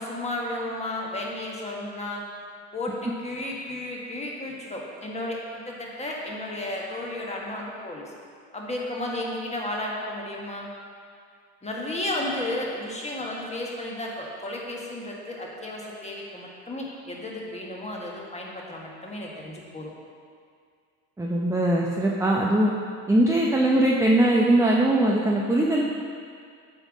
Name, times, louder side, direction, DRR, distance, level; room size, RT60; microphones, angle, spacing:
voice 1, 0.0-2.2 2.7-5.4 5.7-8.1 8.5-10.7 11.6-19.9, left 1 dB, 15° left, -2 dB, 1.5 m, -33 dB
voice 2, 21.2-22.7 23.1-25.8, right 1 dB, 10° right, -3 dB, 0.6 m, -21 dB
8.0 x 3.6 x 6.1 m, 2.2 s
supercardioid pair, 85°, 39 cm